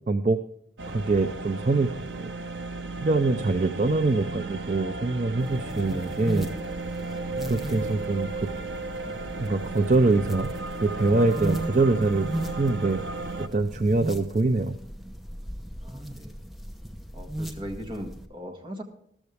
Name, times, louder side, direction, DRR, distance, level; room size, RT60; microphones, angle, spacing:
voice 1, 0.1-0.4 0.9-1.9 2.2-2.3 3.0-6.5 7.4-8.5 9.4-10.5 10.8-12.3 12.6-13.0 13.4-14.8, right 3 dB, 40° right, 9 dB, 0.5 m, -24 dB
sound 1, 0.8-13.5, right 3 dB, 80° right, 0.9 m, -35 dB
sound 2, 5.4-18.3, right 1 dB, ahead, 0.8 m, -37 dB
voice 2, 15.8-16.5 17.1-18.8, equal, 25° right, 4 dB, 1.4 m, -39 dB
13.5 x 13.0 x 3.3 m, 0.72 s
head